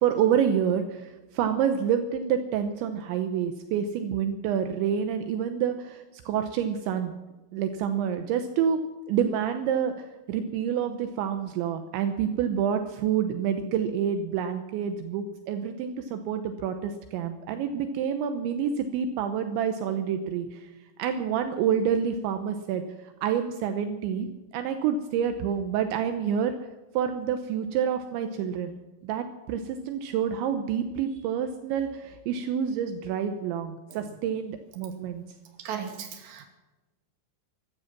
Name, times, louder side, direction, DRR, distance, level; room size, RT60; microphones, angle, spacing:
voice 1, 0.0-7.1 7.5-8.8 9.1-20.7 21.0-24.3 24.5-26.6 26.9-35.2, right 8 dB, 80° right, 7 dB, 3.1 m, -28 dB
voice 2, 35.6-36.5, right 7 dB, 45° right, 3 dB, 3.1 m, -36 dB
16.5 x 12.5 x 5.9 m, 1.1 s
omnidirectional pair, 5.5 m